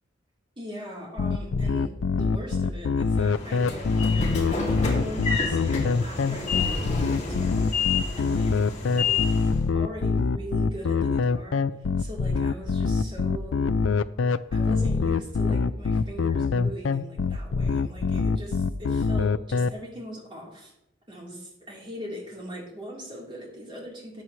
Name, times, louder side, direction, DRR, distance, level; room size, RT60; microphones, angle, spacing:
voice 1, 0.6-7.6 8.1-8.6 9.0-9.2 9.7-11.7 12.0-13.8 14.5-20.7 21.1-24.2, equal, 25° right, -3 dB, 3.6 m, -40 dB
sound 1, 1.2-19.7, left 4 dB, 80° left, 0.5 m, -24 dB
Train / Sliding door, 3.1-9.6, left 4 dB, 35° left, 2.6 m, -30 dB
14.5 x 9.5 x 3.2 m, 0.83 s
head